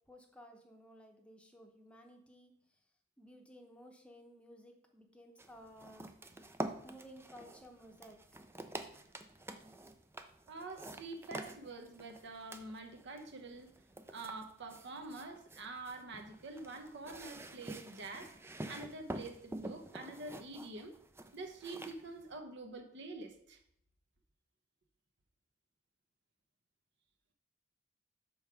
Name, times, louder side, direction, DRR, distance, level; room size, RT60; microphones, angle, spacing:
voice 1, 0.1-2.5 3.2-6.1 6.8-8.2, equal, 5° left, 3 dB, 0.8 m, -56 dB
sound 1, 5.4-22.4, right 2 dB, 10° right, 0.4 m, -48 dB
voice 2, 10.5-13.7 14.1-18.3 18.7-20.9 21.3-23.6, right 3 dB, 60° right, 6 dB, 0.9 m, -46 dB
5.6 x 4.6 x 5.9 m, 0.70 s
head